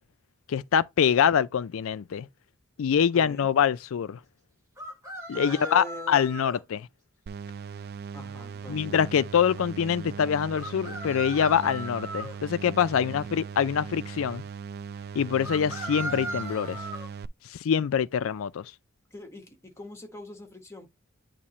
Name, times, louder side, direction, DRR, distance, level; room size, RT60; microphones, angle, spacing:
voice 1, 0.5-2.3 2.8-4.2 5.3-6.9 8.7-14.4 15.2-16.8 17.5-18.7, left 8 dB, 65° left, 0.4 m, -25 dB
voice 2, 3.1-3.5 5.3-6.4 8.1-9.0 19.1-20.9, left 2 dB, 15° left, 1.4 m, -43 dB
sound 1, 4.8-6.6 10.6-12.4 15.4-17.1, right 1 dB, 15° right, 2.1 m, -37 dB
sound 2, 7.3-17.3, right 6 dB, 45° right, 0.3 m, -39 dB
8.5 x 2.9 x 4.2 m
head